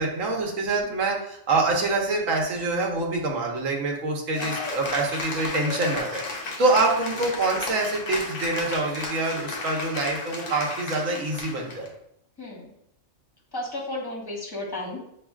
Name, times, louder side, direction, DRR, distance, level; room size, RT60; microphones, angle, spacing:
voice 1, 0.0-11.9, right 3 dB, 90° right, 0 dB, 1.3 m, -26 dB
Cheering / Applause, 4.3-11.9, left 3 dB, 45° left, 0.6 m, -33 dB
voice 2, 12.4-12.7 13.5-15.0, left 1 dB, 20° left, -3 dB, 1.3 m, -34 dB
7.0 x 2.9 x 2.3 m, 0.75 s
omnidirectional pair, 1.3 m